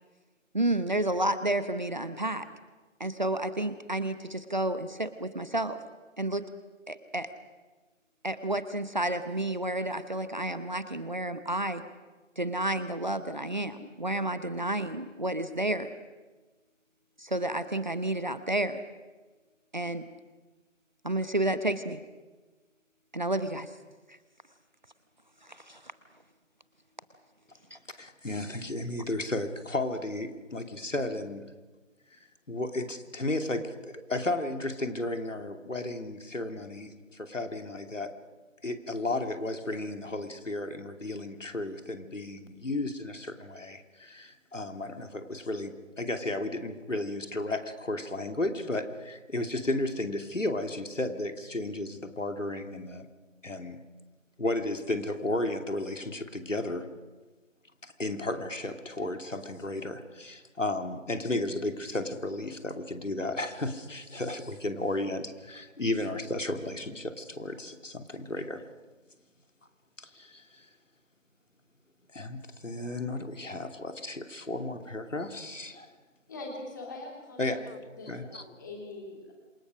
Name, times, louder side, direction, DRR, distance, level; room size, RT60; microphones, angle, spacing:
voice 1, 0.5-2.5 3.0-5.8 6.2-6.4 6.9-7.3 8.2-11.8 12.4-15.9 17.2-18.8 19.7-20.0 21.0-22.0 23.1-23.7 25.5-25.8 27.7-27.8, right 1 dB, 35° right, 12 dB, 1.0 m, -30 dB
voice 2, 28.0-31.4 32.5-38.1 38.6-53.1 53.4-53.8 54.4-56.9 57.8-68.6 70.0-70.7 72.1-75.9 77.4-77.8 78.1-78.4, left 2 dB, 75° left, 6 dB, 2.9 m, -33 dB
voice 3, 76.3-77.5 77.9-78.1 78.4-79.3, left 2 dB, 15° left, 0 dB, 3.1 m, -42 dB
27.0 x 23.0 x 6.4 m, 1.3 s
figure-of-eight pair, 165°, 38 cm